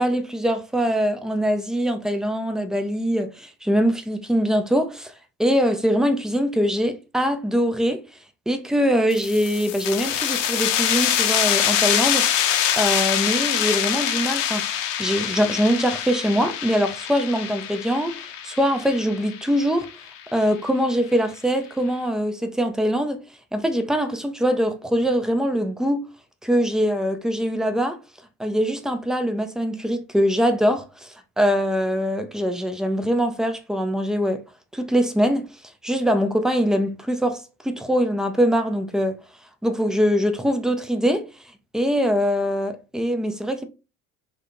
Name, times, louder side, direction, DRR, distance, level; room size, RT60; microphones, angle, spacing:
voice 1, 0.0-5.1 5.4-8.0 8.5-12.2 12.8-19.9 20.3-23.2 23.5-26.0 26.4-28.0 28.4-34.4 34.7-35.4 35.8-39.2 39.6-41.3 41.7-43.7, equal, ahead, 0.3 m, -23 dB
sound 1, 9.1-20.4, left 10 dB, 70° left, 0.6 m, -24 dB
3.5 x 2.1 x 2.7 m
hypercardioid pair, 65°, 40 cm